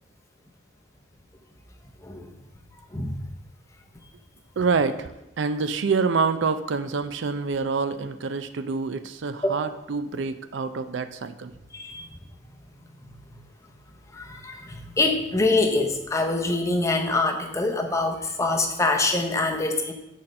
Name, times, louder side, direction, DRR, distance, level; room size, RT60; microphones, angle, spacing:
voice 1, 4.6-5.1 5.4-11.5, right 4 dB, 65° right, 11 dB, 0.4 m, -26 dB
voice 2, 11.7-12.1 14.1-19.9, left 2 dB, 15° left, 3 dB, 0.7 m, -25 dB
6.3 x 4.2 x 6.4 m, 0.92 s
head